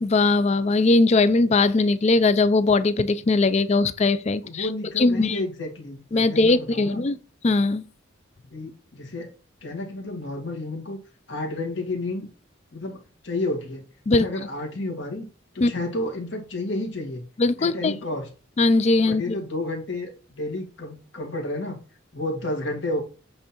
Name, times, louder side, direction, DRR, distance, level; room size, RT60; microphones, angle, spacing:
voice 1, 0.0-4.7 5.0-5.4 6.1-7.2 7.4-7.8 14.1-14.3 15.6-15.7 17.4-17.9 18.6-19.4, left 3 dB, 35° left, 0.4 m, -20 dB
voice 2, 4.4-7.0 8.5-9.3 9.6-11.0 11.3-12.3 12.7-13.8 14.1-15.3 15.5-17.2 17.6-18.2 19.0-20.1 20.4-21.8 22.1-23.0, left 2 dB, 65° left, 1.9 m, -31 dB
7.9 x 3.7 x 4.4 m
head